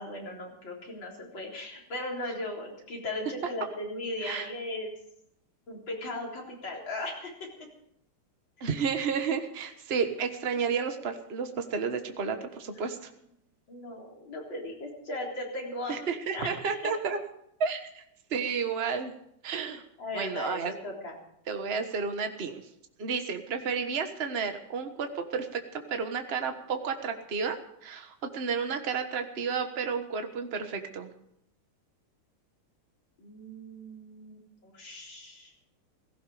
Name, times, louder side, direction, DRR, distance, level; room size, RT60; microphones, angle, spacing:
voice 1, 0.0-4.9 5.7-7.3 12.8-12.9 13.7-16.0 16.3-16.7 20.0-21.1 33.2-35.5, left 1 dB, 60° left, -2 dB, 4.6 m, -37 dB
voice 2, 8.6-13.1 15.9-17.2 17.6-18.0 18.3-19.1 19.4-19.8 20.1-20.7 21.5-22.6 23.0-27.6 27.8-31.1, right 5 dB, 35° right, 6 dB, 1.4 m, -31 dB
17.0 x 15.0 x 5.0 m, 0.75 s
omnidirectional pair, 2.4 m